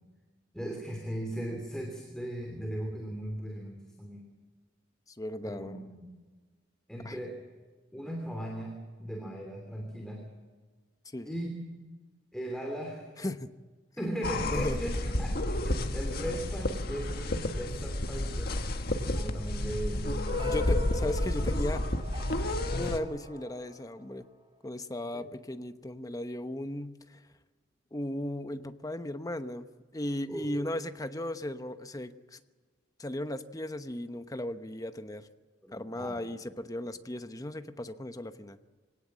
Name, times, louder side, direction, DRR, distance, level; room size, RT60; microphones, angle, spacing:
voice 1, 0.5-4.2 5.4-6.1 6.9-7.4 7.9-10.2 11.2-11.6 12.3-13.1 14.0-18.6 19.0-20.8 25.1-25.3 30.3-30.7 35.6-36.2, right 1 dB, 5° left, 1 dB, 2.9 m, -38 dB
voice 2, 5.2-5.9 7.0-7.2 11.1-11.3 13.2-13.5 14.0-14.1 14.5-14.8 20.4-21.8 22.7-24.3 24.6-27.2 27.9-29.7 29.9-32.4 33.0-35.3 35.7-38.6, left 1 dB, 20° left, 9 dB, 0.9 m, -36 dB
sound 1, 14.2-23.0, left 1 dB, 55° left, 1.5 m, -31 dB
sound 2, 20.3-24.6, right 2 dB, 30° right, 3.4 m, -48 dB
24.0 x 18.0 x 7.5 m, 1.4 s
head